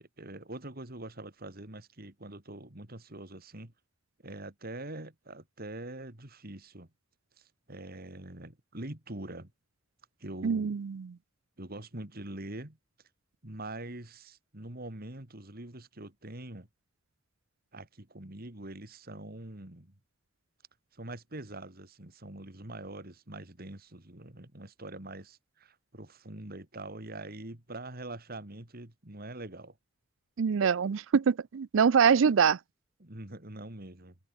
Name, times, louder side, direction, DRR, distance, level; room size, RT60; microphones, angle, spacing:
voice 1, 0.0-3.7 4.2-6.9 7.4-9.5 10.2-10.8 11.6-12.8 13.4-16.7 17.7-20.0 20.9-29.8 33.0-34.2, right 2 dB, 50° right, 3.0 m, -44 dB
voice 2, 10.4-11.1 30.4-32.6, right 6 dB, 75° right, 0.4 m, -24 dB
head